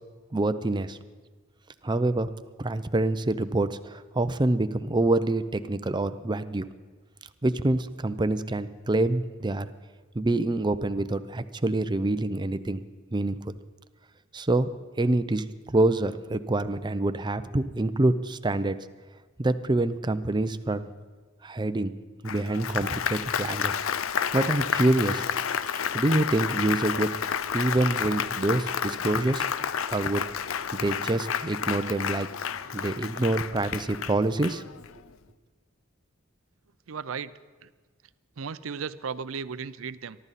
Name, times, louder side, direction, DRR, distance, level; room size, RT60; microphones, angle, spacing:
voice 1, 0.3-1.0 1.8-2.3 2.6-6.7 7.4-9.7 10.1-12.8 13.1-13.5 14.3-14.7 15.0-18.9 19.4-20.9 21.4-21.9 22.2-23.8 24.3-25.2 25.9-29.5 29.9-32.3 32.7-34.6, right 2 dB, 20° right, 11 dB, 0.6 m, -26 dB
Applause, 22.3-35.0, left 8 dB, 75° left, 0.5 m, -30 dB
voice 2, 36.9-37.3 37.6-37.7 38.4-40.2, right 6 dB, 75° right, 16 dB, 0.5 m, -35 dB
23.0 x 12.5 x 4.2 m, 1.4 s
head